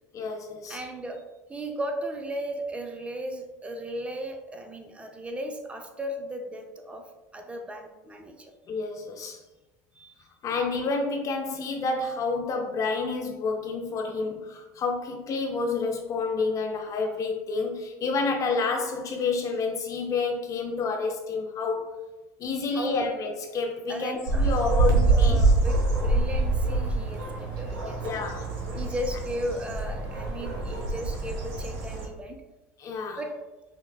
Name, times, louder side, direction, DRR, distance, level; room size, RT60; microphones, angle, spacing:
voice 1, 0.1-0.8 8.7-9.4 10.4-21.9 22.4-25.5 28.0-28.5 32.8-33.2, left 4 dB, 40° left, 3 dB, 0.5 m, -29 dB
voice 2, 0.7-1.2 1.5-7.1 7.3-8.5 10.0-10.1 22.7-23.1 23.9-28.2 28.7-32.4 33.2-33.4, equal, 15° right, 4 dB, 0.5 m, -35 dB
sound 1, 24.3-32.1, right 3 dB, 65° right, 1.0 m, -25 dB
5.7 x 2.2 x 2.3 m, 1.1 s
hypercardioid pair, 85°, 9 cm